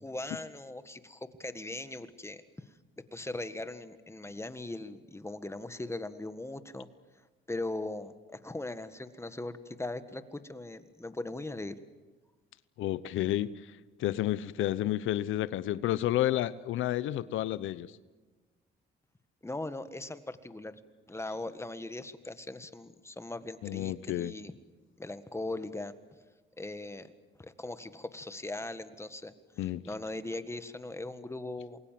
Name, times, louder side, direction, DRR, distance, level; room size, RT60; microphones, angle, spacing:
voice 1, 0.0-2.7 3.1-6.9 7.5-11.7 19.4-20.8 21.1-24.5 25.0-25.9 26.6-27.1 27.4-31.8, left 2 dB, 15° left, 11 dB, 1.7 m, -39 dB
voice 2, 12.8-13.5 14.0-17.9 23.6-24.3 29.6-29.8, left 13 dB, 85° left, 17 dB, 0.8 m, -30 dB
28.5 x 21.5 x 7.7 m, 1.2 s
cardioid pair, 90°, 20 cm